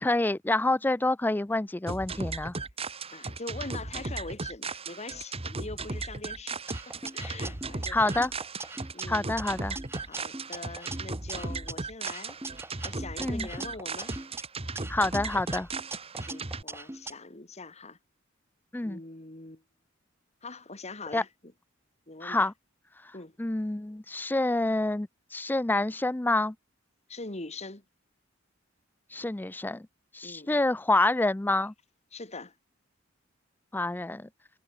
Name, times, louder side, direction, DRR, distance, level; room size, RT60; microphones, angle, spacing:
voice 1, 0.0-2.5 7.9-8.3 9.1-9.8 13.2-13.5 14.9-15.7 18.7-19.0 21.1-21.2 22.2-22.5 23.4-26.5 29.1-29.9 30.1-31.7 33.7-34.3, left 2 dB, 10° left, 0.4 m, -27 dB
sound 1, 1.9-16.6, right 3 dB, 30° right, 1.7 m, -36 dB
voice 2, 3.1-8.3 8.9-9.3 10.0-12.4 12.8-14.1 16.2-18.0 18.8-19.6 20.4-21.5 22.1-22.5 23.1-23.4 27.1-27.8 30.2-30.5 32.1-32.5, left 3 dB, 35° left, 2.9 m, -43 dB
sound 2, 6.7-9.0 9.4-11.7 12.1-14.4 14.8-17.1, right 2 dB, 10° right, 1.0 m, -41 dB
head